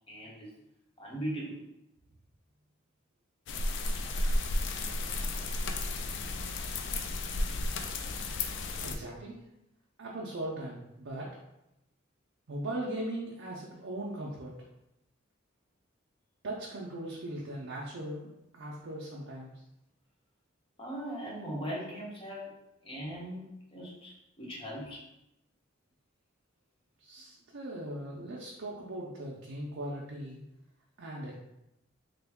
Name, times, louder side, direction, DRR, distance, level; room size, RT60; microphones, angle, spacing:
voice 1, 0.1-0.5 1.0-1.6 20.8-22.5 22.8-25.0, equal, 30° left, -4 dB, 1.0 m, -39 dB
sound 1, 3.5-9.0, left 2 dB, 65° left, 0.3 m, -33 dB
voice 2, 8.8-9.4 10.0-11.3 12.5-14.5 16.4-19.5 27.0-30.4 31.0-31.4, right 1 dB, 70° right, -4 dB, 0.5 m, -39 dB
3.3 x 2.2 x 3.5 m, 0.86 s
head